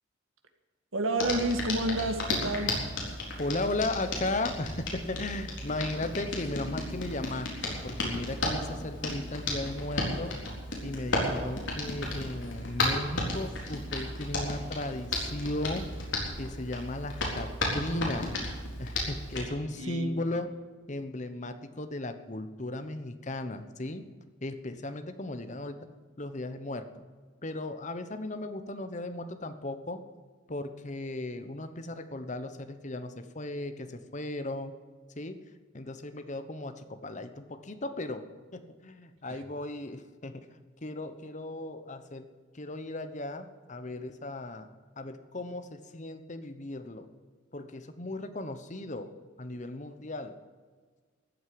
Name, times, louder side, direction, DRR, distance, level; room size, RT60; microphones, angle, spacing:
voice 1, 0.9-2.7 19.8-20.1 39.3-39.4, right 1 dB, 90° right, 6 dB, 2.0 m, -30 dB
Hands, 1.2-19.5, left 1 dB, 65° left, 4.1 m, -34 dB
voice 2, 3.4-10.4 10.8-16.1 16.4-18.3 18.8-20.5 20.9-24.0 24.4-25.8 26.2-27.0 27.4-30.0 30.5-34.7 35.2-35.4 35.7-38.3 38.5-40.4 40.8-42.3 42.5-44.7 45.0-47.1 47.5-49.1 49.4-50.3, left 2 dB, 35° left, 9 dB, 1.0 m, -36 dB
14.5 x 8.1 x 9.5 m, 1.5 s
head